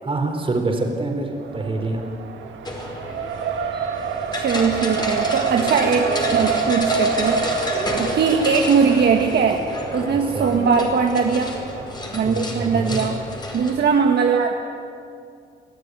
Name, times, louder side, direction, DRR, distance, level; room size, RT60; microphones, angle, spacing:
voice 1, 0.0-2.1 10.3-10.5 12.2-13.1, right 2 dB, 25° right, 3 dB, 4.1 m, -25 dB
Race car auto racing, 1.4-12.4, right 6 dB, 75° right, 2.0 m, -28 dB
sound 1, 2.6-13.8, left 1 dB, 20° left, 4.9 m, -31 dB
voice 2, 4.3-11.6 12.1-13.2 13.5-14.5, right 5 dB, 55° right, 3 dB, 1.6 m, -20 dB
24.0 x 14.0 x 9.6 m, 2.4 s
cardioid pair, 90°, 20 cm